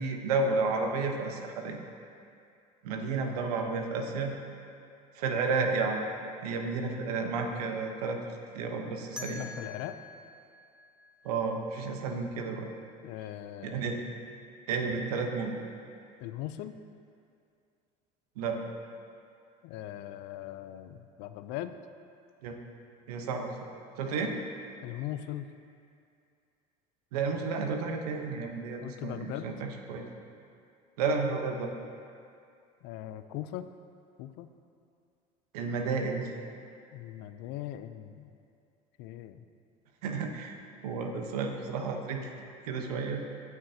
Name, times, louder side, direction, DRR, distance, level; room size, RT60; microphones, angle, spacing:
voice 1, 0.0-1.8 2.8-4.3 5.1-6.0 6.4-8.2 8.5-9.5 11.2-12.7 13.6-14.0 14.7-15.6 18.4-18.6 22.4-22.6 23.1-23.5 24.0-24.3 27.1-30.0 31.0-31.7 35.5-36.3 40.0-40.6 40.8-42.3 42.7-43.2, right 4 dB, 90° right, 3 dB, 1.0 m, -31 dB
voice 2, 9.2-10.0 13.0-14.0 16.2-16.7 19.6-21.7 24.8-25.5 28.8-29.5 32.8-33.7 34.2-34.5 36.9-38.3 39.0-39.4, left 13 dB, 70° left, 11 dB, 0.5 m, -40 dB
sound 1, 9.2-12.0, left 3 dB, 5° right, 1.3 m, -46 dB
16.5 x 6.0 x 2.8 m, 2.4 s
supercardioid pair, 85°, 19 cm